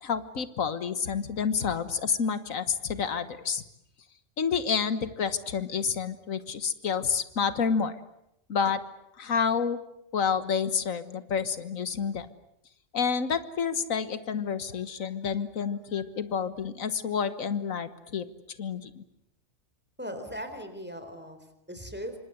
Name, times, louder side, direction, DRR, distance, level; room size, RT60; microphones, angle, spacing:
voice 1, 0.0-3.6 4.4-8.0 8.5-8.8 9.2-9.8 10.1-12.3 12.9-18.2 18.6-19.0, left 6 dB, 85° left, 13 dB, 1.7 m, -29 dB
voice 2, 20.0-22.2, equal, 10° right, 7 dB, 4.0 m, -39 dB
28.0 x 25.5 x 8.0 m, 0.82 s
omnidirectional pair, 1.4 m